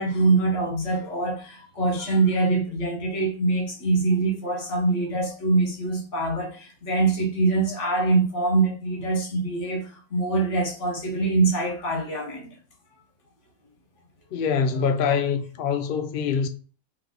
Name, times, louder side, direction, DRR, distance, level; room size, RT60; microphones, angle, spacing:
voice 1, 0.0-12.6, right 3 dB, 55° left, 1.5 m, -24 dB
voice 2, 14.3-16.5, left 6 dB, 80° left, 0.4 m, -24 dB
3.4 x 3.1 x 3.9 m
omnidirectional pair, 1.6 m